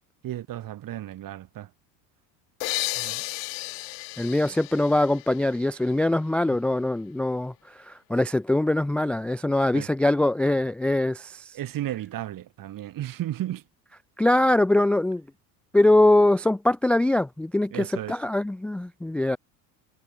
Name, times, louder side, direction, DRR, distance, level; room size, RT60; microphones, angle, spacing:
voice 1, 0.2-1.7 3.0-3.2 9.4-9.9 11.5-13.6 17.7-18.2, right 13 dB, 45° right, 1.7 m, -34 dB
sound 1, 2.6-6.2, left 33 dB, 65° left, 1.8 m, -34 dB
voice 2, 4.2-7.5 7.9-11.4 14.2-15.2 15.7-19.4, left 1 dB, 5° left, 0.4 m, -22 dB
hypercardioid pair, 85°, 47 cm